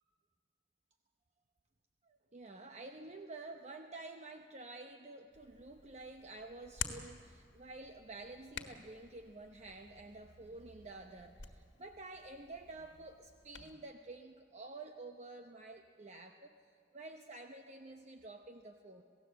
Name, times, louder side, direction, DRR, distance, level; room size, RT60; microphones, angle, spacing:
voice 1, 2.1-16.5 16.9-19.0, right 2 dB, 40° right, 5 dB, 0.8 m, -50 dB
Hands, 5.3-13.7, left 7 dB, 80° left, 1.6 m, -50 dB
27.0 x 17.0 x 7.7 m, 2.3 s
head